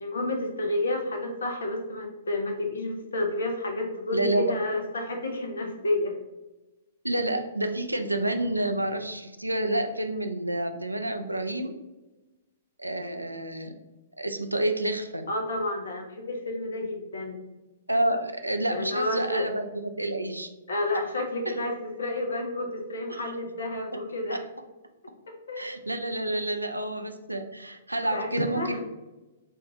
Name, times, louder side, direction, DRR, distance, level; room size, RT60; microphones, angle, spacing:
voice 1, 0.0-6.1 15.3-17.4 18.7-19.5 20.7-24.4 25.5-25.7 28.1-28.8, left 1 dB, 65° left, 2 dB, 0.6 m, -30 dB
voice 2, 4.1-4.4 7.0-11.7 12.8-13.7 14.2-15.3 17.9-20.5 21.5-21.6 23.1-23.2 23.9-24.0 24.3-24.4 25.6-28.8, right 1 dB, 85° right, 7 dB, 0.4 m, -29 dB
4.4 x 2.4 x 3.0 m, 1.1 s
figure-of-eight pair, 115°, 0 cm